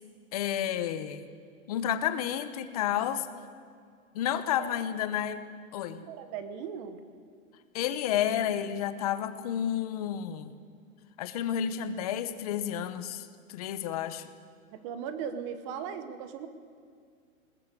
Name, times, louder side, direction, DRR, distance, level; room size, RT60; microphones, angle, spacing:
voice 1, 0.3-1.3 1.7-3.3 4.1-5.4 5.7-6.0 7.7-10.5 11.2-14.3, left 10 dB, 25° left, 11 dB, 0.9 m, -31 dB
voice 2, 6.0-7.0 14.7-16.5, right 7 dB, 20° right, 11 dB, 1.0 m, -38 dB
21.0 x 19.0 x 8.3 m, 2.2 s
hypercardioid pair, 170°, 42 cm